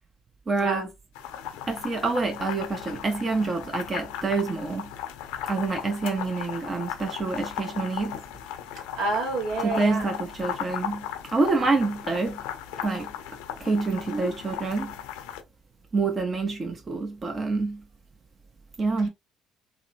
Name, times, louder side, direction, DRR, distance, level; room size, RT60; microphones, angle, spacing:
voice 1, 0.5-0.9 1.7-4.9 5.5-8.2 9.6-12.4 12.8-13.1 13.6-14.9 15.9-17.8 18.8-19.1, right 3 dB, 35° right, 0.6 m, -27 dB
sound 1, 1.1-15.4, left 10 dB, 75° left, 0.5 m, -37 dB
voice 2, 9.0-10.1 14.1-14.3, right 3 dB, 75° right, 1.1 m, -28 dB
2.9 x 2.1 x 2.5 m
hypercardioid pair, 55°, 0 cm